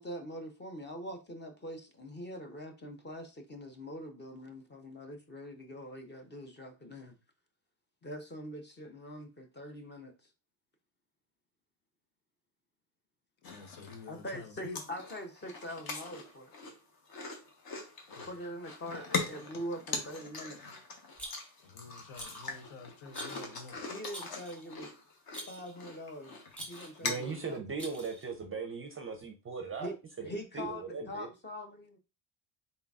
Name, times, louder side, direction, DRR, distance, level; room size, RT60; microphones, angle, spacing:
voice 1, 0.0-7.2 8.0-10.1 14.1-16.5 18.3-20.7 23.9-24.9 25.5-26.4 26.7-27.6 29.8-30.0 30.2-32.0, equal, 25° left, 0.6 m, -43 dB
voice 2, 13.4-14.8 18.1-18.3 21.6-23.8, left 4 dB, 70° left, 1.0 m, -48 dB
sound 1, 13.4-14.2 14.6-27.6, left 4 dB, 50° left, 1.1 m, -41 dB
Rattle, 21.2-21.7 22.1-22.5 23.1-23.5 24.1-24.7 25.3-25.7 26.5-27.0 27.8-28.3, right 1 dB, 5° left, 1.3 m, -46 dB
voice 3, 27.0-29.9 30.2-30.3 30.5-31.3, right 4 dB, 30° right, 0.5 m, -38 dB
4.0 x 3.8 x 2.3 m
cardioid pair, 125°, 47 cm